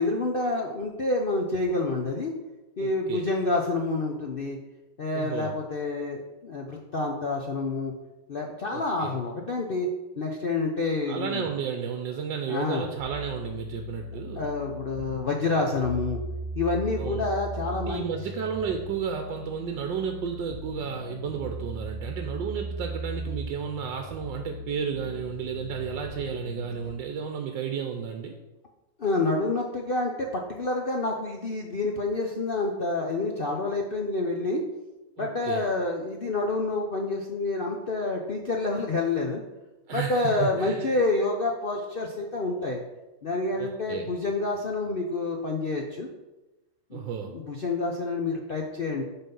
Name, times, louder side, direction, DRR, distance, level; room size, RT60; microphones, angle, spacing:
voice 1, 0.0-2.3 2.8-4.6 5.0-7.9 8.3-9.9 10.2-11.5 12.5-12.8 14.4-16.2 16.5-18.1 29.0-34.6 35.2-39.4 39.9-42.8 43.2-46.1 46.9-49.0, left 3 dB, 60° left, 0 dB, 0.5 m, -28 dB
voice 2, 2.8-3.2 5.1-5.5 8.7-9.2 11.1-14.5 17.0-17.3 17.8-28.4 35.2-35.7 39.9-40.9 43.6-44.1 46.9-47.3, right 7 dB, 80° right, 4 dB, 1.4 m, -33 dB
sound 1, 13.0-26.8, right 1 dB, 40° right, 2.3 m, -38 dB
9.2 x 4.1 x 5.4 m, 1.1 s
omnidirectional pair, 2.0 m